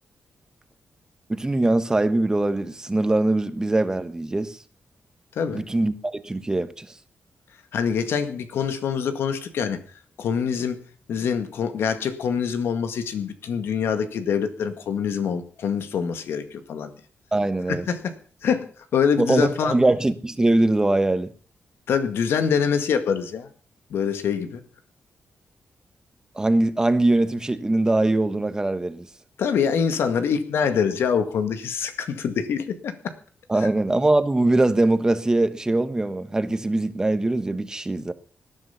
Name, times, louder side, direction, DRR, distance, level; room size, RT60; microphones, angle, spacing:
voice 1, 1.3-4.6 5.5-6.9 17.3-17.9 19.2-21.3 26.3-29.1 33.5-38.1, right 2 dB, 15° right, 1.3 m, -22 dB
voice 2, 7.7-9.8 10.2-10.8 11.1-16.9 17.7-19.8 21.9-23.5 23.9-24.6 29.4-33.1 33.6-33.7, left 7 dB, 90° left, 1.9 m, -25 dB
19.0 x 11.0 x 5.8 m
wide cardioid pair, 120°, 4 cm